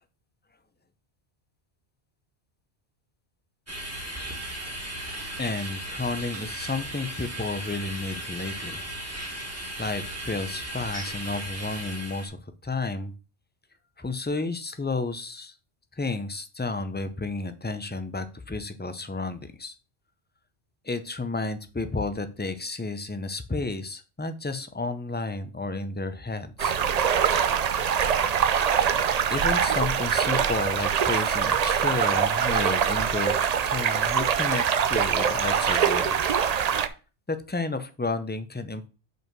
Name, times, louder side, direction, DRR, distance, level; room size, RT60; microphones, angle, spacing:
sound 1, 3.7-12.3, right 1 dB, 15° right, 1.6 m, -36 dB
voice 1, 5.4-8.8 9.8-12.4 12.6-13.1 14.0-15.5 15.9-19.7 20.8-26.7 29.3-36.1 36.6-36.9 37.3-38.9, left 3 dB, 15° left, 10 dB, 0.3 m, -32 dB
sound 2, 26.6-36.9, right 7 dB, 50° right, 0.5 m, -24 dB
5.5 x 4.6 x 6.0 m, 0.34 s
omnidirectional pair, 1.1 m